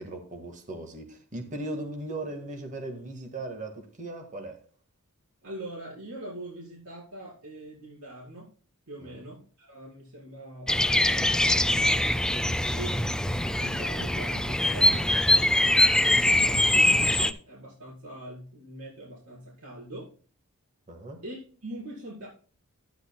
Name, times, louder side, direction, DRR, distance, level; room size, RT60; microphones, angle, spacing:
voice 1, 0.0-4.6 9.0-9.2 20.9-21.2, right 2 dB, 35° right, 1.8 m, -38 dB
voice 2, 5.4-8.5 8.9-12.0 12.7-13.0 13.2-20.1 21.2-22.3, right 1 dB, 85° right, 4.9 m, -42 dB
Bird vocalization bird call bird song, 10.7-17.3, left 1 dB, 5° left, 0.4 m, -23 dB
11.0 x 11.0 x 2.3 m
head